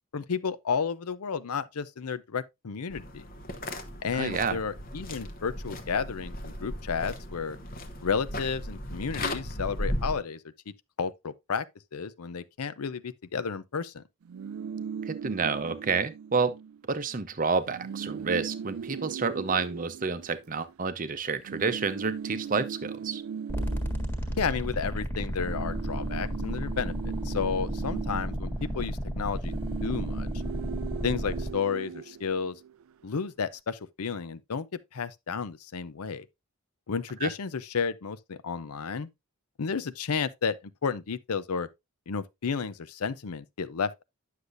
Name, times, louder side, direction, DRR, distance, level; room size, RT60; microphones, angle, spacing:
voice 1, 0.1-3.2 4.0-7.6 8.0-11.7 11.9-14.0 24.4-26.9 27.2-29.5 29.8-30.3 31.0-32.6 33.0-36.3 36.9-39.1 39.6-40.6 40.8-41.7 42.1-44.0, left 6 dB, 85° left, 0.6 m, -32 dB
sound 1, 2.9-10.2, left 1 dB, 40° left, 1.0 m, -36 dB
voice 2, 4.1-4.6 15.0-16.6 16.9-23.2 37.2-37.3, right 4 dB, 35° right, 0.6 m, -29 dB
sound 2, 14.2-16.8 17.1-17.2 17.5-20.9 21.4-25.0 25.3-32.9, right 7 dB, 70° right, 0.3 m, -39 dB
sound 3, 23.5-31.5, equal, 10° left, 1.5 m, -33 dB
9.8 x 6.6 x 2.5 m
head